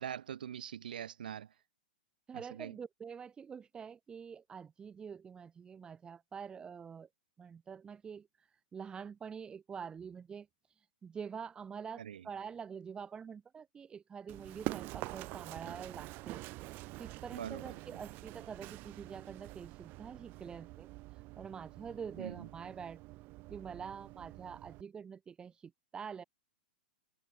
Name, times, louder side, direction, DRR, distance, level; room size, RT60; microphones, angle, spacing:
voice 1, 0.0-1.5 2.3-2.7 12.0-12.2 17.3-17.8 22.2-22.5, right 9 dB, 75° right, 1.3 m, -43 dB
voice 2, 2.3-7.1 7.4-16.4 17.0-23.0 23.5-26.2, right 6 dB, 20° right, 2.1 m, -46 dB
Run, 14.3-24.8, right 21 dB, 40° right, 6.7 m, -46 dB
hypercardioid pair, 110°, 5 cm